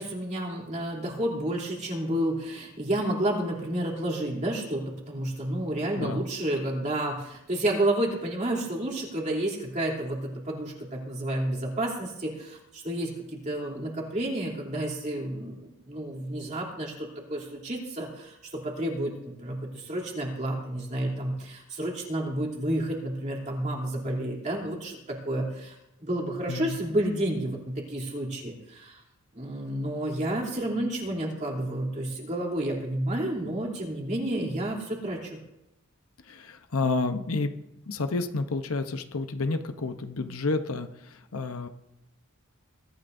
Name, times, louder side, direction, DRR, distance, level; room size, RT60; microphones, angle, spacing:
voice 1, 0.0-25.7 26.0-29.0 29.3-35.4, right 1 dB, 35° right, -2 dB, 3.2 m, -30 dB
voice 2, 26.5-26.8 36.2-37.5 37.9-41.7, left 3 dB, 70° left, 7 dB, 0.9 m, -30 dB
22.0 x 13.5 x 2.7 m, 0.88 s
head